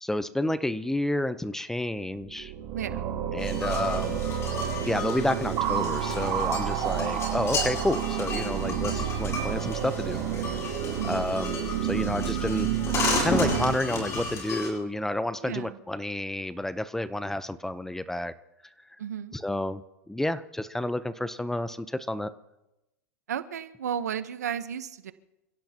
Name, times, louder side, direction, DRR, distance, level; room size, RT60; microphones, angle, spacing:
voice 1, 0.0-2.5 3.3-4.2 4.8-10.2 11.1-12.7 13.2-18.3 19.3-19.8 20.1-22.3, left 1 dB, 5° left, 14 dB, 0.8 m, -30 dB
sound 1, 2.2-13.7, right 9 dB, 45° right, 3.2 m, -30 dB
voice 2, 2.7-3.0 7.0-7.2 10.9-11.2 15.4-15.8 19.0-19.4 23.3-25.1, right 9 dB, 85° right, 12 dB, 1.0 m, -34 dB
sound 2, 3.4-14.7, left 3 dB, 35° left, 8.0 m, -33 dB
28.5 x 16.5 x 2.9 m, 0.95 s
hypercardioid pair, 110°, 9 cm